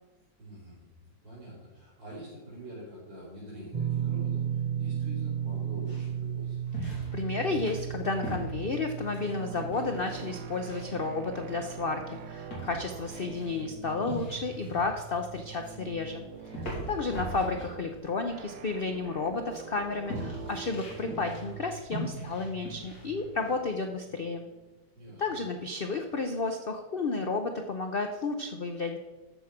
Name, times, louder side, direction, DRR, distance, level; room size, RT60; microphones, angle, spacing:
voice 1, 0.4-0.8 1.2-6.7 16.8-17.0 24.9-25.2, equal, 85° right, -10 dB, 4.7 m, -46 dB
sound 1, 3.7-16.5 18.1-18.2, right 9 dB, 30° right, 0.7 m, -36 dB
sound 2, 5.9-23.5, right 1 dB, 55° left, 3.7 m, -43 dB
voice 2, 6.8-16.3 16.5-24.5 25.2-29.0, left 3 dB, 70° left, 5 dB, 0.5 m, -32 dB
sound 3, 9.2-25.7, right 6 dB, 70° right, 1.2 m, -46 dB
13.5 x 4.9 x 5.9 m, 1.2 s
omnidirectional pair, 2.0 m